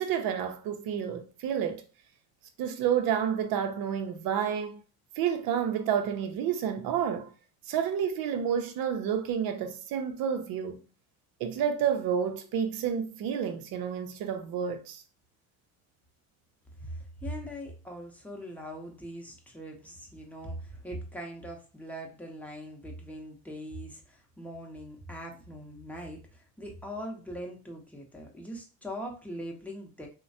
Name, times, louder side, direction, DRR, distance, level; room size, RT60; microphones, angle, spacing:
voice 1, 0.0-1.8 2.6-4.8 5.2-7.3 7.7-10.8 11.4-15.0, right 8 dB, 65° right, 0.6 m, -30 dB
voice 2, 16.8-30.1, equal, 5° left, 0.7 m, -41 dB
3.1 x 2.1 x 2.7 m
supercardioid pair, 95°, 39 cm